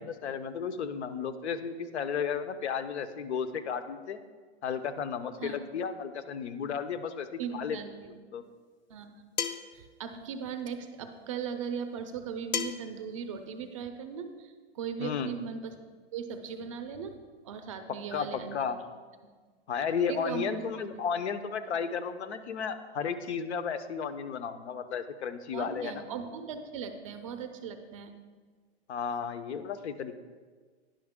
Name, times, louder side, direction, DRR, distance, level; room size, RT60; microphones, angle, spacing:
voice 1, 0.0-4.2 4.6-7.8 8.1-8.4 15.0-15.3 18.1-18.8 19.7-26.1 28.9-30.2, left 6 dB, 85° left, 11 dB, 0.8 m, -33 dB
voice 2, 7.4-8.1 8.9-9.2 9.7-15.8 16.1-17.2 17.4-18.6 20.1-20.4 20.9-21.0 25.5-28.1, right 6 dB, 30° right, 8 dB, 0.5 m, -38 dB
sound 1, 9.4-9.7 12.5-12.9, left 8 dB, 45° left, 0.4 m, -32 dB
10.0 x 5.8 x 3.6 m, 1.5 s
hypercardioid pair, 160°, 33 cm